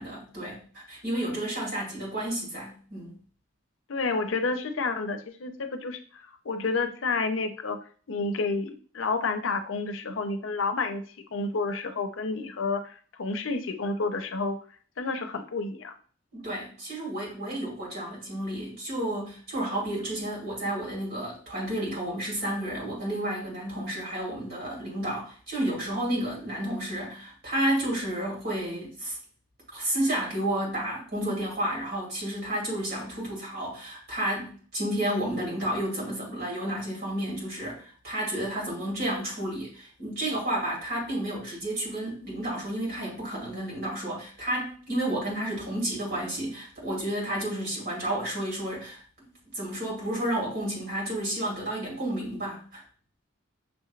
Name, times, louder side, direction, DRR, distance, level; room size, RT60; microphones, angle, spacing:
voice 1, 0.0-3.1 16.3-29.2 29.7-52.8, right 1 dB, 50° right, -3 dB, 2.3 m, -31 dB
voice 2, 3.9-11.0 11.3-14.6 15.0-15.9, left 3 dB, 80° left, 7 dB, 0.6 m, -30 dB
6.1 x 3.2 x 2.4 m, 0.43 s
head